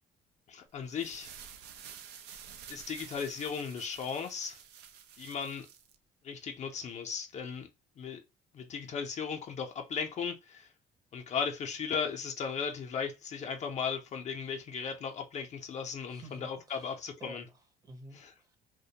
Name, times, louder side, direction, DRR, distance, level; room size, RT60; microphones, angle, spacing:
voice 1, 0.5-1.3 2.7-4.6 5.2-5.7 6.2-7.7 8.0-8.2 8.5-10.7 11.1-17.4 18.1-18.3, left 6 dB, 45° left, 0.5 m, -36 dB
sound 1, 0.8-5.9, right 8 dB, 80° right, 0.4 m, -50 dB
voice 2, 16.1-18.6, right 1 dB, 20° right, 0.6 m, -51 dB
2.4 x 2.1 x 2.7 m
cardioid pair, 110°, 17 cm